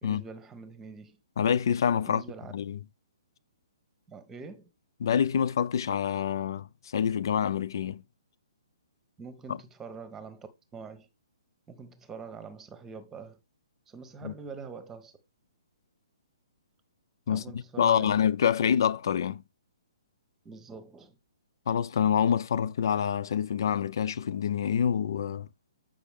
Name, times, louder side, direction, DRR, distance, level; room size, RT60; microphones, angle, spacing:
voice 1, 0.0-1.2 2.0-2.5 4.1-4.7 9.2-11.1 11.7-13.4 13.9-15.1 17.3-18.1 20.4-21.1, right 5 dB, 15° right, 1.1 m, -44 dB
voice 2, 1.4-2.2 2.5-2.8 5.0-8.0 9.5-9.6 14.2-14.3 17.3-17.4 17.8-19.4 21.7-25.5, left 8 dB, 55° left, 0.5 m, -26 dB
8.2 x 5.2 x 3.5 m
figure-of-eight pair, 125°, 3 cm